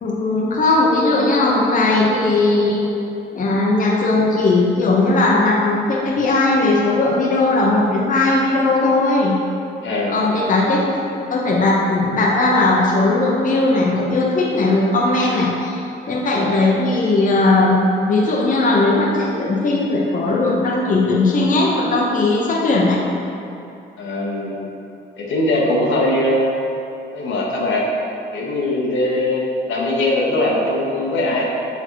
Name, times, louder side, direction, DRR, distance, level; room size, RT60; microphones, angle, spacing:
voice 1, 0.0-2.8 3.3-9.4 10.1-10.8 11.3-17.8 18.1-23.0, left 2 dB, 40° left, -3 dB, 0.8 m, -18 dB
voice 2, 9.8-10.2 16.3-16.6 24.0-24.6 25.2-26.5 27.1-27.8 28.3-31.4, left 1 dB, 75° left, -3 dB, 1.2 m, -21 dB
5.7 x 4.1 x 4.5 m, 2.6 s
cardioid pair, 90°, 20 cm